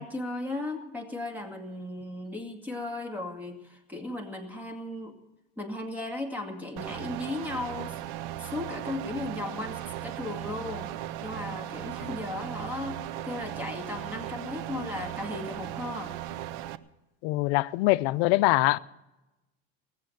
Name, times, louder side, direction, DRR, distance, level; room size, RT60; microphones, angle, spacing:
voice 1, 0.0-5.2 5.6-8.0 8.4-10.9 11.2-16.1, left 2 dB, 5° right, 2.3 m, -36 dB
sound 1, 6.8-16.8, right 13 dB, 75° right, 0.8 m, -37 dB
voice 2, 17.2-18.8, left 21 dB, 80° left, 0.6 m, -23 dB
19.5 x 7.4 x 9.2 m
supercardioid pair, 115°, 30 cm